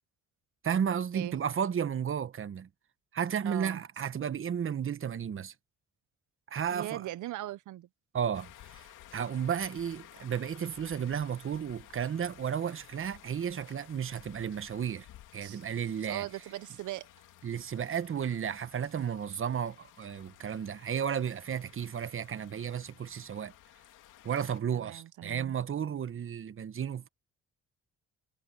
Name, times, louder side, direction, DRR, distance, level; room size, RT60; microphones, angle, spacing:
voice 1, 0.6-2.7 3.1-5.5 6.5-7.1 8.1-8.9 9.1-15.1 15.3-16.3 17.4-23.5 24.2-27.1, right 8 dB, 45° right, 1.2 m, -33 dB
voice 2, 3.4-3.8 6.7-7.9 15.4-15.6 16.0-17.1 24.7-25.5, right 15 dB, 75° right, 0.9 m, -39 dB
sound 1, 8.3-24.6, left 13 dB, 85° left, 2.9 m, -55 dB
cardioid pair, 90°, 30 cm